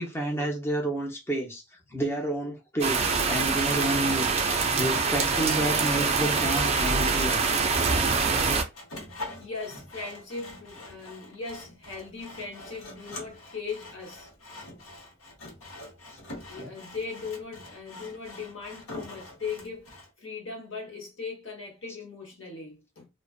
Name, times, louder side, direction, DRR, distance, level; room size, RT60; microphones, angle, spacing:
voice 1, 0.0-1.6 1.9-7.4 16.6-16.7, right 1 dB, 10° left, 0.6 m, -30 dB
sound 1, 2.8-8.6, right 4 dB, 30° right, 0.4 m, -25 dB
Sawing, 7.6-20.1, left 2 dB, 80° left, 0.9 m, -44 dB
voice 2, 9.4-14.3 16.5-23.1, left 4 dB, 60° left, 1.1 m, -39 dB
2.4 x 2.2 x 2.3 m
head